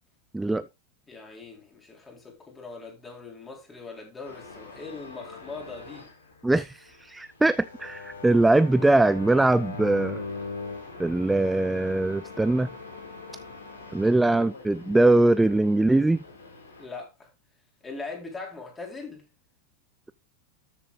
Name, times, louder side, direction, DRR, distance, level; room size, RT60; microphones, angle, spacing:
voice 1, 0.3-0.7 6.4-10.2 11.0-12.7 13.9-16.2, right 2 dB, 5° right, 0.4 m, -22 dB
voice 2, 1.1-6.1 16.8-17.1 17.8-19.2, left 4 dB, 15° left, 4.2 m, -40 dB
sound 1, 4.2-16.8, left 4 dB, 70° left, 3.5 m, -41 dB
13.0 x 7.5 x 2.5 m
figure-of-eight pair, 90°, 0 cm